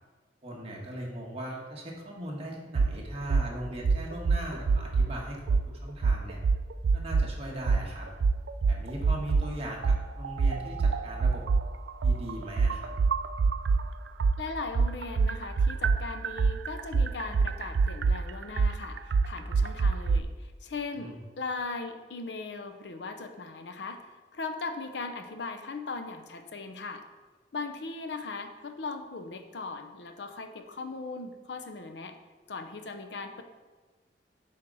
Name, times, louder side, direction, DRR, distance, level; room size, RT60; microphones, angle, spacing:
voice 1, 0.4-6.4 6.9-8.1 8.7-11.4 12.0-12.9 20.9-21.1, right 1 dB, 35° right, -2 dB, 1.6 m, -39 dB
sound 1, 2.7-2.9 3.3-3.5 3.8-5.1 5.5-5.7 6.0-7.3 7.7-7.8 8.2-9.5 9.8-13.8 14.2-20.2, right 4 dB, 80° right, 0.4 m, -25 dB
voice 2, 14.4-27.0 27.5-32.1 32.5-33.4, left 3 dB, 75° left, 6 dB, 0.7 m, -38 dB
8.4 x 5.1 x 4.1 m, 1.3 s
head